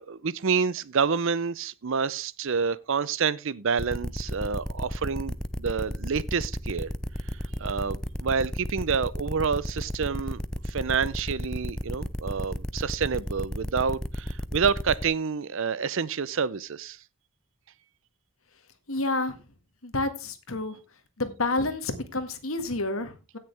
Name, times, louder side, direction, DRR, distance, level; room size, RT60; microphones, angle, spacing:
voice 1, 0.0-6.9 7.6-17.0, right 5 dB, 60° right, 0.6 m, -28 dB
sound 1, 3.8-15.1, equal, 5° left, 0.4 m, -33 dB
voice 2, 18.9-19.4 19.8-20.8 21.2-23.4, left 2 dB, 70° left, 1.8 m, -29 dB
16.5 x 6.6 x 3.4 m
head